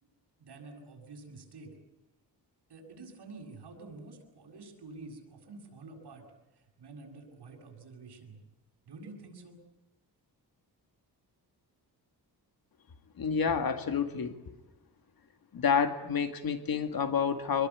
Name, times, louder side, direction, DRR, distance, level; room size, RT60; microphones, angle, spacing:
voice 1, 0.4-1.7 2.7-6.3 6.5-8.4 8.9-9.6, right 3 dB, 80° right, 0 dB, 7.0 m, -48 dB
voice 2, 13.2-14.4 15.5-17.7, left 6 dB, 60° left, 8 dB, 2.1 m, -29 dB
26.0 x 22.0 x 8.4 m, 0.98 s
wide cardioid pair, 170°, 40 cm